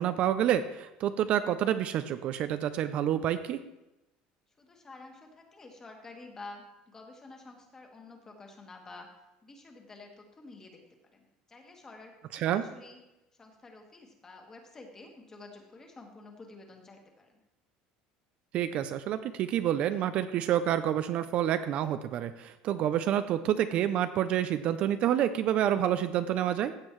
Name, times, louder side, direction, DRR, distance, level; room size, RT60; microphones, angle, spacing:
voice 1, 0.0-3.6 12.3-12.6 18.5-26.7, right 11 dB, 45° right, 11 dB, 0.4 m, -28 dB
voice 2, 4.6-9.1 9.4-10.8 11.1-13.0 13.4-17.4, left 3 dB, 20° left, 2 dB, 1.5 m, -50 dB
15.0 x 7.5 x 3.1 m, 0.96 s
cardioid pair, 150°, 3 cm